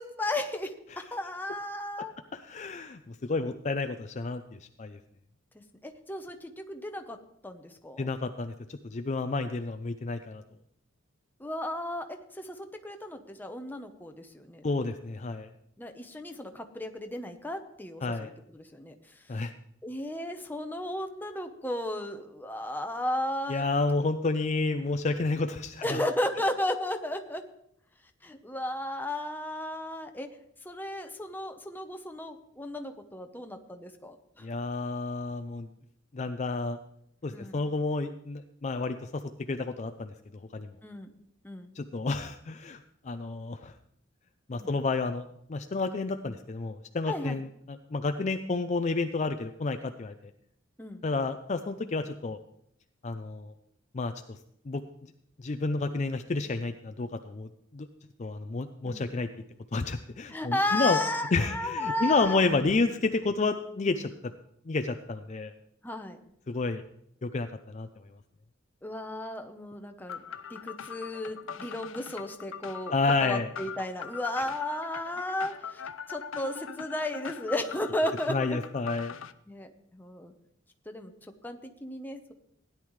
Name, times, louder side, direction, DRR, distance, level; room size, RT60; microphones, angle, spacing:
voice 1, 0.0-2.1 5.5-7.2 7.4-8.1 11.4-14.6 15.8-18.9 19.8-23.6 25.8-27.4 28.2-30.3 30.6-34.5 37.3-37.6 40.8-41.1 41.4-41.7 44.6-44.8 47.1-47.4 50.8-51.0 58.8-59.0 60.3-62.4 65.8-66.2 68.8-70.2 70.5-72.9 73.2-75.8 76.1-78.6 79.5-80.3 80.9-81.1 81.4-82.3, left 1 dB, 10° left, 6 dB, 0.9 m, -34 dB
voice 2, 2.3-5.0 8.0-10.4 14.6-15.5 18.0-18.3 19.3-19.5 23.5-26.0 34.4-35.7 36.1-36.8 37.2-39.2 39.5-40.1 40.5-40.7 41.8-42.8 43.0-43.7 44.5-50.1 51.0-52.4 53.0-53.5 53.9-54.4 54.7-54.8 55.4-57.9 58.2-59.3 59.7-61.0 61.3-64.1 64.7-65.5 66.5-66.8 67.2-67.9 72.9-73.5 78.3-79.2, left 3 dB, 35° left, 8 dB, 0.5 m, -30 dB
sound 1, 70.1-79.3, left 7 dB, 80° left, 0.6 m, -41 dB
16.5 x 10.5 x 3.2 m, 0.72 s
head